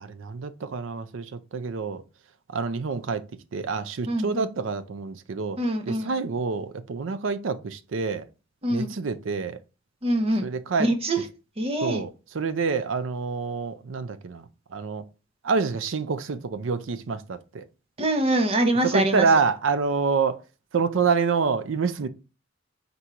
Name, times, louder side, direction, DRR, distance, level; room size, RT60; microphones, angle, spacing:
voice 1, 0.0-2.0 2.5-3.2 3.5-5.6 5.9-8.3 8.7-9.6 10.4-10.9 11.8-14.5 14.7-15.0 15.4-17.6 18.8-20.4 20.7-22.1, right 5 dB, 85° right, 0.5 m, -27 dB
voice 2, 4.1-4.5 5.6-6.1 8.6-8.9 10.0-10.5 10.8-11.2 11.6-12.0 18.0-19.3, right 1 dB, 30° right, 0.7 m, -24 dB
4.3 x 2.7 x 4.6 m
head